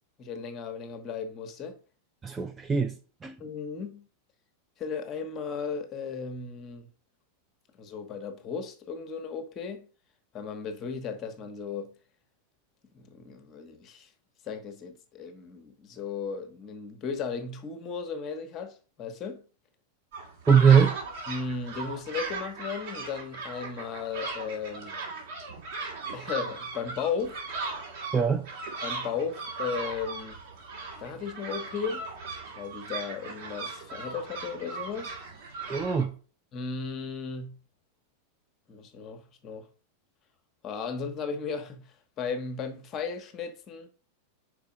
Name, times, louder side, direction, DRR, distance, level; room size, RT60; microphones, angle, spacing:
voice 1, 0.2-1.8 3.4-4.1 4.8-6.9 7.8-9.9 10.3-11.9 12.9-14.1 14.4-19.4 21.3-25.0 26.1-27.5 28.8-30.4 31.0-32.0 32.6-35.2 36.5-37.6 38.7-39.7 40.6-43.9, left 5 dB, 30° left, 1.1 m, -35 dB
voice 2, 2.2-2.9 3.2-3.4 20.5-21.0 28.1-28.5 35.7-36.1, right 7 dB, 15° right, 0.5 m, -21 dB
sound 1, 20.1-36.0, right 3 dB, 50° right, 2.2 m, -38 dB
5.0 x 4.7 x 5.2 m
figure-of-eight pair, 90°, 0 cm